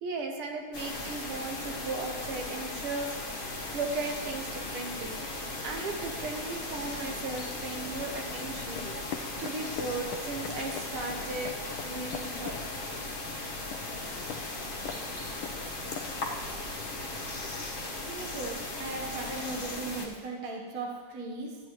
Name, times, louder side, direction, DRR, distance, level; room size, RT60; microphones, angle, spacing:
voice 1, 0.0-3.2 3.7-5.2 5.6-11.6 11.8-12.6 16.5-16.6 17.0-17.2, right 3 dB, 80° right, 3 dB, 1.9 m, -36 dB
sound 1, 0.7-20.1, left 2 dB, 30° left, 1.2 m, -37 dB
sound 2, 7.1-17.0, left 8 dB, 75° left, 1.5 m, -45 dB
voice 2, 16.3-16.7 17.0-17.2 18.1-21.6, right 3 dB, 45° right, -2 dB, 1.6 m, -38 dB
14.0 x 9.9 x 3.1 m, 1.5 s
omnidirectional pair, 2.4 m